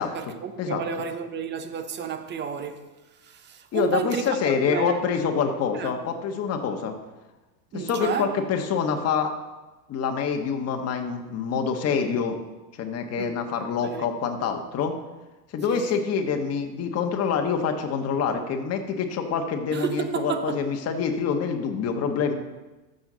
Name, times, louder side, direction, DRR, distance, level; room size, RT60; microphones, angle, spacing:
voice 1, 0.0-2.8 3.2-5.0 5.7-5.9 7.7-8.3 13.2-13.4 13.8-14.2 15.7-16.0 19.7-20.6, right 7 dB, 20° right, 0.8 m, -31 dB
voice 2, 3.7-6.9 7.7-9.3 9.9-12.4 12.8-14.9 15.5-22.3, left 6 dB, 30° left, 1.4 m, -26 dB
13.5 x 6.6 x 4.0 m
hypercardioid pair, 100°, 50 cm